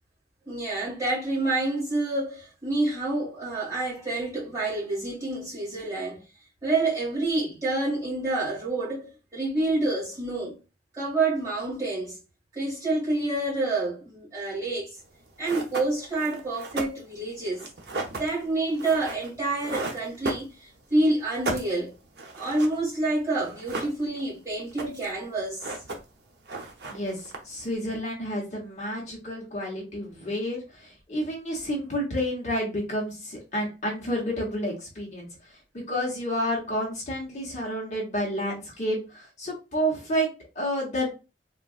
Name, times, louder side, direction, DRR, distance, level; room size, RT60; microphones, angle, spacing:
voice 1, 0.4-6.2 6.6-10.5 10.9-12.2 12.5-14.9 15.4-17.6 18.2-21.9 22.3-25.7, right 2 dB, 20° right, 1.7 m, -28 dB
sound 1, 15.1-15.2 15.4-20.9 21.2-22.8 23.1-23.2 23.4-24.3 24.6-25.2 25.5-26.2 26.5-27.7, right 2 dB, 65° right, 0.7 m, -35 dB
voice 2, 26.9-35.3 35.7-41.1, equal, 40° left, 0.9 m, -30 dB
3.5 x 2.4 x 2.4 m
head